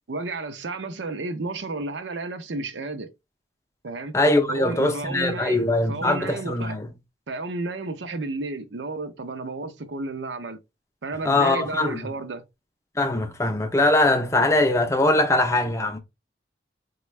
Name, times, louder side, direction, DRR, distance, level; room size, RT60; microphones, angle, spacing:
voice 1, 0.1-3.1 3.8-4.1 4.5-6.8 7.3-10.6 11.0-12.4, right 3 dB, 90° right, 0.6 m, -32 dB
voice 2, 4.1-6.9 11.3-12.0 13.0-16.0, left 2 dB, 15° left, 0.5 m, -21 dB
4.2 x 2.3 x 3.1 m
head